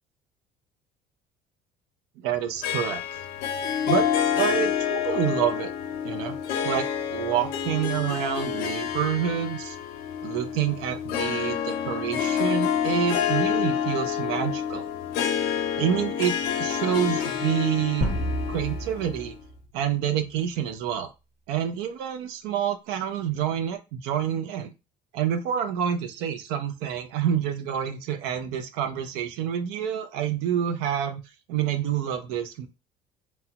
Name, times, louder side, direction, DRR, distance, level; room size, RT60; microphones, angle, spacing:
voice 1, 2.2-3.2 3.9-4.1 4.4-5.7 6.0-6.4 6.6-6.9 7.1-9.8 10.2-14.9 15.8-18.1 18.5-19.4 19.7-21.1 21.5-24.7 25.1-31.2 31.5-32.7, right 9 dB, 90° right, 7 dB, 0.6 m, -28 dB
Harp, 2.6-19.4, left 8 dB, 75° left, 0.5 m, -28 dB
sound 1, 18.0-20.0, equal, 45° right, 1.0 m, -30 dB
3.0 x 2.2 x 2.8 m, 0.27 s
cardioid pair, 130°, 16 cm